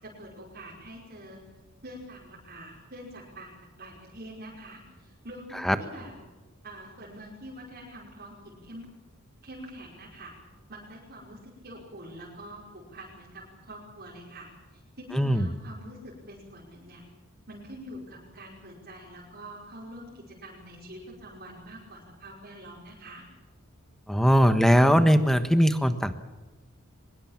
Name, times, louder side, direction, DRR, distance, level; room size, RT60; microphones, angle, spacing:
voice 1, 0.0-1.4 1.8-6.1 6.6-8.9 9.4-10.3 10.7-17.0 17.5-23.2, right 1 dB, 45° right, -4 dB, 5.3 m, -45 dB
voice 2, 15.1-15.5 24.1-26.1, equal, ahead, 9 dB, 1.3 m, -20 dB
23.5 x 21.5 x 7.4 m, 1.2 s
head